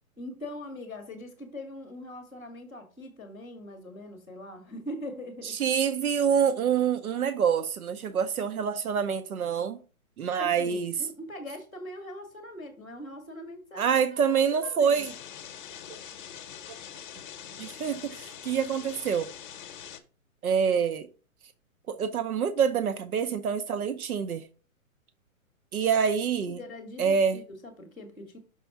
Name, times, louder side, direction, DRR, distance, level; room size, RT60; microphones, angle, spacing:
voice 1, 0.2-5.5 10.4-15.0 26.5-28.4, left 1 dB, 5° right, 0.4 m, -42 dB
voice 2, 5.4-9.8 10.2-11.1 13.8-15.1 16.7-16.8 17.6-19.3 20.4-21.1 21.9-24.4 25.7-26.6 27.0-27.4, right 7 dB, 90° right, 0.8 m, -26 dB
sound 1, 14.9-20.0, left 9 dB, 35° left, 0.8 m, -44 dB
6.0 x 3.4 x 5.8 m
hypercardioid pair, 155°, 42 cm